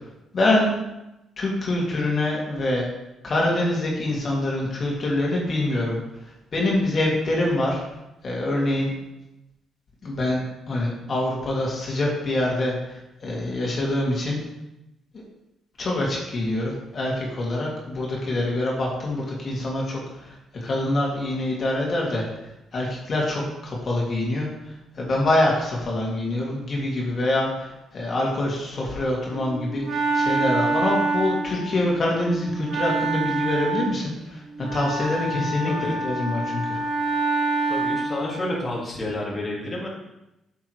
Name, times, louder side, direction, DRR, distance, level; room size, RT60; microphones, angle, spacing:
voice 1, 0.3-0.7 1.4-2.9 3.2-6.0 6.5-7.8 8.2-8.9 10.0-14.4 15.1-15.2 15.8-22.3 22.7-36.9, left 1 dB, 45° left, -3 dB, 2.4 m, -25 dB
Wind instrument woodwind instrument, 29.3-38.4, right 3 dB, 50° right, 2.0 m, -27 dB
voice 2, 35.6-36.0 37.7-39.9, left 1 dB, 25° left, -5 dB, 2.2 m, -30 dB
8.9 x 7.1 x 3.2 m, 0.92 s
cardioid pair, 90°, 0 cm